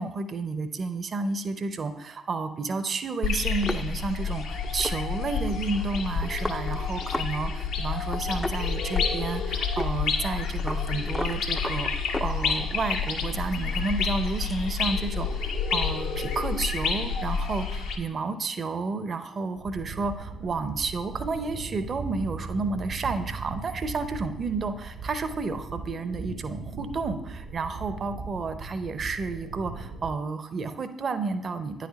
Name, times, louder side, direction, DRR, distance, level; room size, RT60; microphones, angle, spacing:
voice 1, 0.0-11.9 12.2-31.9, right 4 dB, 45° right, 10 dB, 0.6 m, -31 dB
sound 1, 3.2-18.0, left 5 dB, 70° left, 0.7 m, -29 dB
sound 2, 3.6-7.3 7.6-7.7 8.0-9.4 9.8-9.9 10.2-12.8 13.2-14.6, left 1 dB, 15° left, 0.4 m, -37 dB
sound 3, 19.6-30.1, right 3 dB, 70° right, 0.9 m, -39 dB
9.4 x 4.1 x 4.1 m, 0.89 s
hypercardioid pair, 45°, 0 cm